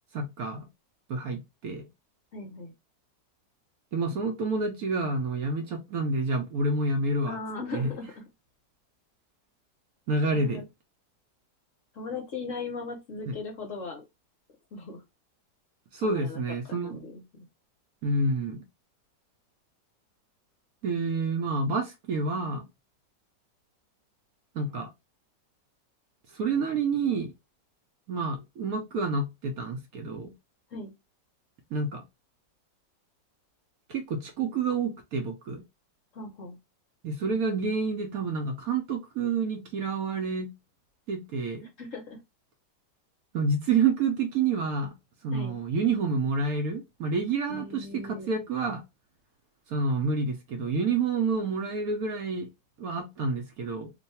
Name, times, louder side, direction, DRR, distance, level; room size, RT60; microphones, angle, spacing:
voice 1, 0.1-0.7 1.1-1.9 3.9-7.4 7.7-7.9 10.1-10.6 13.3-13.4 15.9-17.0 18.0-18.6 20.8-22.7 24.5-24.9 26.3-27.3 28.1-30.3 31.7-32.0 33.9-35.6 37.0-40.5 41.1-41.7 43.3-44.9 45.2-48.8 49.7-52.5 52.8-53.9, right 3 dB, 65° right, 1.0 m, -28 dB
voice 2, 2.3-2.7 7.3-8.2 10.3-10.6 11.9-14.0 14.7-15.0 16.0-17.4 30.7-30.9 36.1-36.6 41.8-42.2 45.3-45.6 47.5-48.3, left 3 dB, 55° left, 1.0 m, -38 dB
3.1 x 2.2 x 4.1 m
omnidirectional pair, 1.9 m